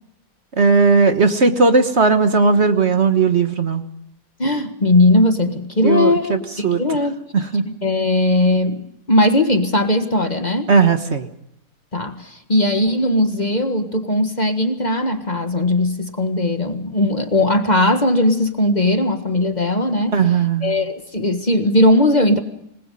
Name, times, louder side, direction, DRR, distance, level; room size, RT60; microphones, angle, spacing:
voice 1, 0.6-3.8 5.8-6.8 7.3-7.6 10.7-11.3 20.1-20.7, right 4 dB, 45° right, 8 dB, 1.5 m, -16 dB
voice 2, 4.4-7.2 7.8-10.7 11.9-20.2 20.6-22.4, left 1 dB, 30° left, 7 dB, 1.6 m, -18 dB
27.5 x 20.0 x 5.4 m, 0.78 s
omnidirectional pair, 1.6 m